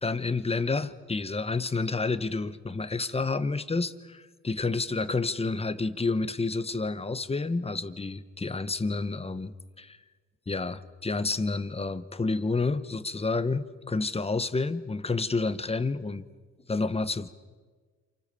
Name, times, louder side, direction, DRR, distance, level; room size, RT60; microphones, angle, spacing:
voice 1, 0.0-10.0 10.5-16.2 16.7-17.3, left 3 dB, 20° left, 12 dB, 1.3 m, -29 dB
29.5 x 27.5 x 7.1 m, 1.4 s
cardioid pair, 90°, 30 cm